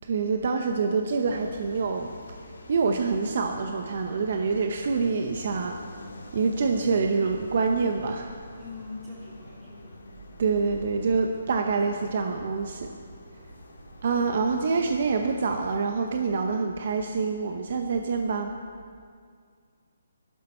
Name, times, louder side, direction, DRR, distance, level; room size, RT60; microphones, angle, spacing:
voice 1, 0.0-2.1 2.7-5.8 6.3-8.4 10.4-12.9 14.0-18.5, right 4 dB, 50° right, 4 dB, 0.8 m, -26 dB
sound 1, 1.3-15.5, left 2 dB, 85° left, 2.1 m, -47 dB
voice 2, 8.6-10.1, left 3 dB, 15° right, -6 dB, 3.0 m, -42 dB
14.0 x 12.0 x 4.3 m, 2.1 s
hypercardioid pair, 165°, 0 cm